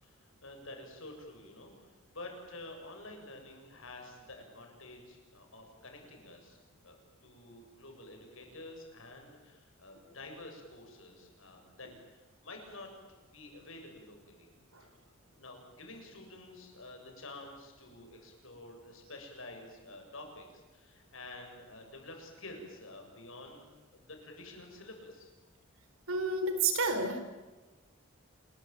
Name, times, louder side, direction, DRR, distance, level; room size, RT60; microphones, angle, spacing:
voice 1, 0.0-6.6 6.8-12.9 13.2-14.5 14.8-15.0 15.3-25.3, left 2 dB, 70° left, 3 dB, 7.6 m, -49 dB
voice 2, 26.1-27.2, right 3 dB, 80° right, 7 dB, 4.6 m, -30 dB
28.0 x 22.5 x 9.1 m, 1.2 s
head